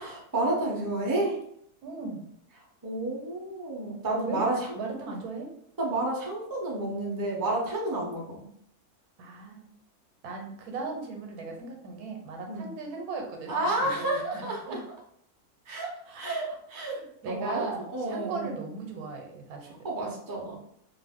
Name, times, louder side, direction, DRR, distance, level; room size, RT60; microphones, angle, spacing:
voice 1, 0.0-1.4 2.8-4.7 5.8-8.5 12.4-12.7 13.5-14.8 15.7-17.0 17.3-17.6 17.9-18.6 19.6-20.6, right 2 dB, 25° right, -3 dB, 0.4 m, -30 dB
voice 2, 1.8-2.2 4.3-5.5 9.2-9.7 10.2-14.8 16.1-16.6 16.8-19.7, right 3 dB, 85° right, 2 dB, 1.2 m, -38 dB
2.5 x 2.4 x 3.5 m, 0.70 s
omnidirectional pair, 1.6 m